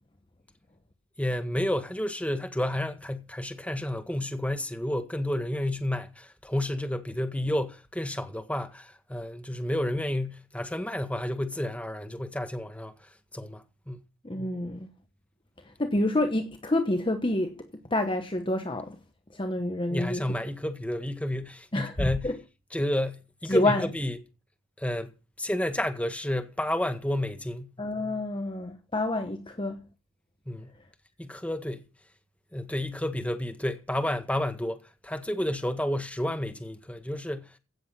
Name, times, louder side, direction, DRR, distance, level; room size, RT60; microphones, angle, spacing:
voice 1, 1.2-14.0 19.9-22.3 22.7-24.2 24.8-27.8 30.5-30.7 31.2-31.9 32.5-37.5, left 1 dB, 5° left, 1.7 m, -31 dB
voice 2, 14.2-14.9 15.7-19.0 19.3-20.4 21.7-22.4 23.5-23.9 27.8-29.8, left 1 dB, 25° left, 1.1 m, -28 dB
16.5 x 7.8 x 6.0 m
head